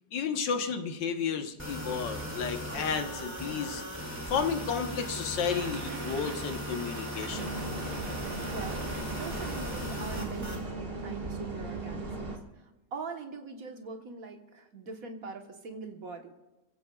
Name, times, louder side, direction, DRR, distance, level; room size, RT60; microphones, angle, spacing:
voice 1, 0.1-3.8 4.3-7.5, left 6 dB, 80° left, 5 dB, 1.9 m, -32 dB
sound 1, 1.6-10.6, equal, 10° right, 3.0 m, -38 dB
sound 2, 5.5-10.5, right 6 dB, 70° right, 1.6 m, -45 dB
sound 3, 7.3-12.4, right 2 dB, 30° right, 1.7 m, -37 dB
voice 2, 8.4-16.3, right 4 dB, 55° right, 4 dB, 1.6 m, -43 dB
28.5 x 16.0 x 2.4 m, 1.0 s
omnidirectional pair, 1.9 m